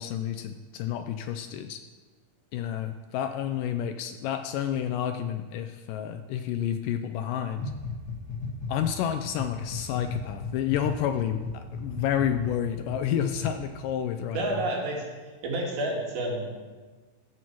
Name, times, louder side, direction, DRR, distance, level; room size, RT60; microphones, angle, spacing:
voice 1, 0.0-1.8 2.5-7.7 8.7-14.6, left 9 dB, 80° left, 7 dB, 2.0 m, -30 dB
sound 1, 7.6-8.9 9.3-13.0 13.3-13.5, left 4 dB, 50° left, 1.2 m, -35 dB
voice 2, 14.3-15.0 15.4-16.5, right 2 dB, 85° right, -2 dB, 4.0 m, -29 dB
13.5 x 7.6 x 4.6 m, 1.4 s
omnidirectional pair, 4.2 m